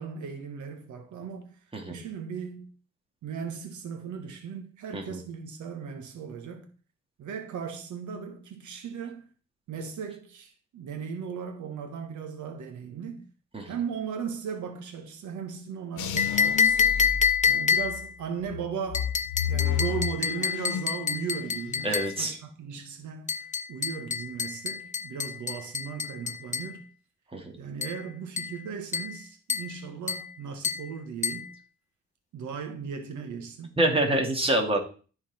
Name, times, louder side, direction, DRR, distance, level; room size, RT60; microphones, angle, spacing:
voice 1, 0.0-1.6 1.9-2.7 3.2-6.7 7.2-9.3 9.7-13.2 13.6-17.0 17.5-19.1 19.5-26.8 27.6-31.5 32.3-33.7, right 6 dB, 75° right, 1.5 m, -37 dB
sound 1, 16.0-18.0 18.5-21.0 21.3-21.9, left 9 dB, 80° left, 1.1 m, -32 dB
spoon tapping glass, 16.2-18.1 18.9-22.2 23.3-26.7 27.8-28.0 28.4-28.6 28.9-29.2 29.5-29.8 30.1-30.3 30.6-30.9 31.2-31.5, left 6 dB, 25° left, 0.7 m, -27 dB
voice 2, 21.8-22.3 27.3-27.4 33.8-34.8, right 1 dB, 20° right, 2.4 m, -25 dB
12.5 x 4.4 x 4.3 m
cardioid pair, 90°, 30 cm